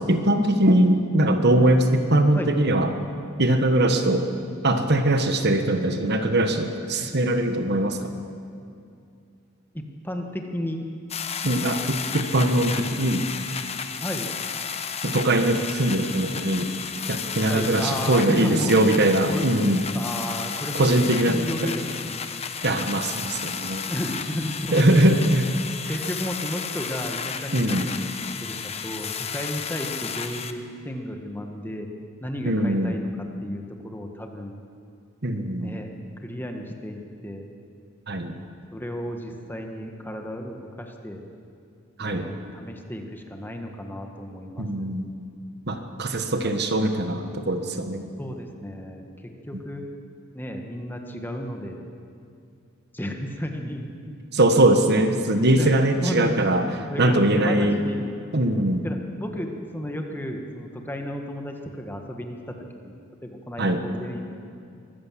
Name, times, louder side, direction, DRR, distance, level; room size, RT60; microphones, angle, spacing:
voice 1, 0.0-2.9 3.4-4.3 4.6-8.1 11.4-13.3 15.0-16.7 17.1-19.8 20.7-21.7 22.6-23.9 24.7-25.5 27.5-27.9 32.5-33.0 35.2-35.8 38.1-38.4 42.0-42.3 44.6-45.1 45.7-48.1 54.3-56.6 57.0-57.8 58.3-58.8 63.6-63.8, right 1 dB, 55° right, 7 dB, 1.4 m, -21 dB
voice 2, 9.7-10.9 14.0-14.3 17.5-18.7 19.3-19.5 19.9-22.2 23.9-24.9 25.8-28.6 28.8-30.6 30.8-31.9 32.2-34.5 35.6-35.9 36.2-37.4 38.7-41.2 42.0-44.9 46.3-46.5 48.2-49.9 50.3-51.8 52.9-53.9 55.3-58.1 58.8-64.2, equal, 10° left, 3 dB, 1.6 m, -33 dB
sound 1, 11.1-30.5, left 7 dB, 30° left, 0.9 m, -33 dB
23.5 x 14.5 x 7.6 m, 2.4 s
head